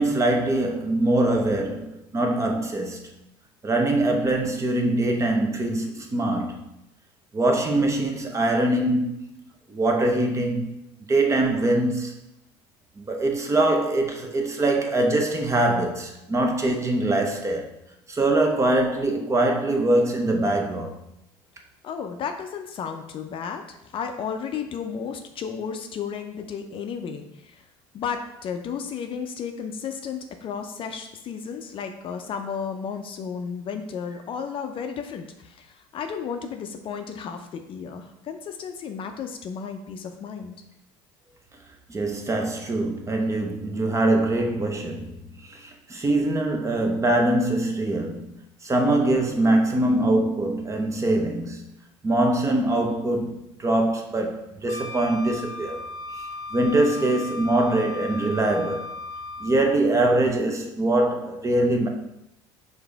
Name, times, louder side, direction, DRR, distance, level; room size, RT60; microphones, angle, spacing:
voice 1, 0.0-3.0 3.6-6.7 7.3-9.3 9.7-10.7 11.1-12.1 13.0-17.7 18.1-20.9 41.9-48.4 48.6-51.6 52.0-55.8 56.1-58.9 59.4-61.9, right 2 dB, 25° right, 0.8 m, -23 dB
voice 2, 21.8-27.6 27.9-40.5, left 6 dB, 45° left, 0.5 m, -33 dB
Wind instrument woodwind instrument, 54.7-59.8, left 2 dB, 25° left, 1.1 m, -36 dB
4.8 x 2.6 x 3.4 m
hypercardioid pair, 80°, 12 cm